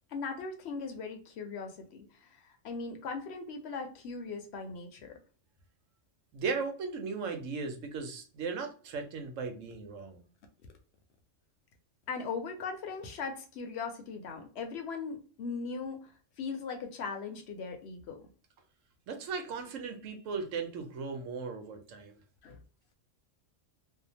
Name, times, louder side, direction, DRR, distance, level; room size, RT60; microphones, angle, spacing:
voice 1, 0.1-5.2 12.1-16.1 16.4-18.3 22.4-22.6, left 4 dB, 65° left, 5 dB, 0.8 m, -39 dB
voice 2, 6.3-10.2 19.1-22.2, right 5 dB, 85° right, 5 dB, 1.1 m, -37 dB
2.7 x 2.0 x 2.7 m, 0.40 s
omnidirectional pair, 1.3 m